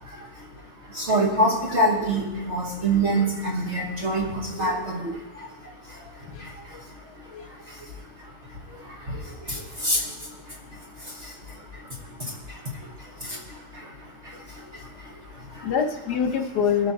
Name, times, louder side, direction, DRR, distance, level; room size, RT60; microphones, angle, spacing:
voice 1, 0.0-15.7, right 1 dB, 45° right, -3 dB, 1.6 m, -29 dB
voice 2, 7.1-7.4 8.7-8.8 15.6-16.9, left 7 dB, 75° left, 4 dB, 1.6 m, -25 dB
21.0 x 7.5 x 2.8 m, 1.1 s
omnidirectional pair, 1.8 m